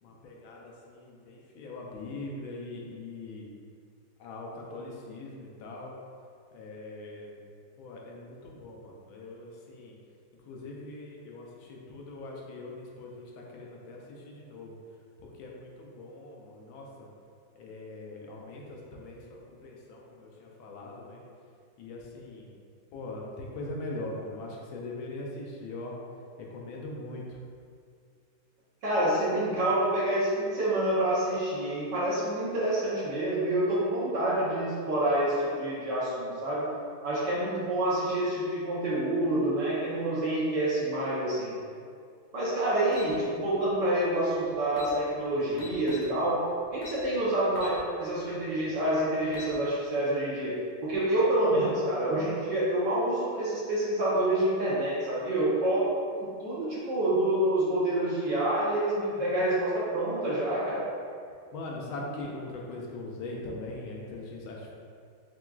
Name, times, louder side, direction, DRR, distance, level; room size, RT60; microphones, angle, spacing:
voice 1, 0.0-3.4 4.2-6.0 6.5-7.4 7.8-9.9 10.5-14.8 15.2-17.1 17.5-21.2 21.8-22.5 22.9-26.0 26.4-27.4 51.5-51.7 61.5-64.7, left 2 dB, 85° left, -2 dB, 1.4 m, -41 dB
voice 2, 28.8-36.7 37.0-41.5 42.3-46.4 46.7-47.7 48.0-55.9 56.2-60.9, right 1 dB, 70° right, -8 dB, 1.3 m, -27 dB
sound 1, 42.9-43.1 44.3-44.4 44.7-44.9 45.6-46.1 46.8-47.0 47.5-47.8 48.2-48.3 49.1-49.5, left 3 dB, 60° left, 0.9 m, -43 dB
5.8 x 2.4 x 2.3 m, 2.2 s
omnidirectional pair, 2.2 m